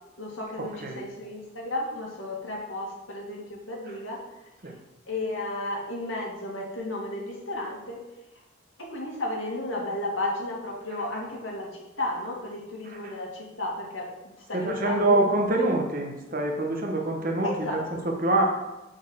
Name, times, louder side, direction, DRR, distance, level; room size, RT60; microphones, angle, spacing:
voice 1, 0.2-4.5 5.1-8.0 8.8-14.1 14.4-15.6 16.2-16.3 17.4-18.1, left 2 dB, 75° left, -2 dB, 2.3 m, -33 dB
voice 2, 14.5-17.8 18.2-18.4, right 2 dB, 45° right, 1 dB, 1.4 m, -25 dB
8.0 x 4.5 x 6.4 m, 1.0 s
head